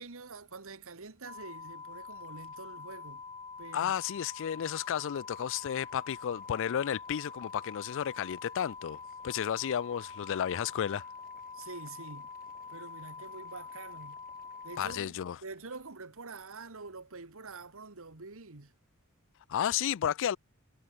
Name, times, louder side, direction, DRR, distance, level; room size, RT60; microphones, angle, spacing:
voice 1, 0.0-3.2 3.6-3.9 11.5-12.3 12.7-14.2 14.6-18.7, right 3 dB, 70° right, 1.8 m, -46 dB
sound 1, 1.2-15.0, left 5 dB, 25° left, 3.7 m, -46 dB
voice 2, 3.7-11.0 14.8-15.4 19.5-20.4, left 9 dB, 60° left, 0.4 m, -32 dB
Boiling, 4.4-15.9, left 4 dB, 40° left, 6.2 m, -64 dB
head